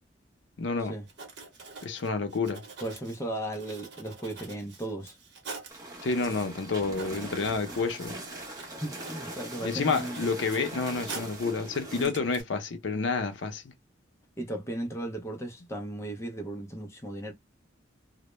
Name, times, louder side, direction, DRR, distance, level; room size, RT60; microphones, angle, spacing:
voice 1, 0.6-0.9 1.8-2.6 6.0-8.3 9.6-13.7, left 4 dB, 70° left, 0.5 m, -29 dB
Writing, 1.1-5.8 6.4-6.5 6.7-11.5 11.9-12.4, right 4 dB, 65° right, 0.9 m, -46 dB
voice 2, 2.8-5.2 8.6-10.3 12.0-12.2 14.4-17.3, right 1 dB, 15° left, 0.4 m, -36 dB
sound 1, 5.7-12.1, right 1 dB, 20° right, 0.7 m, -41 dB
2.1 x 2.1 x 3.0 m
head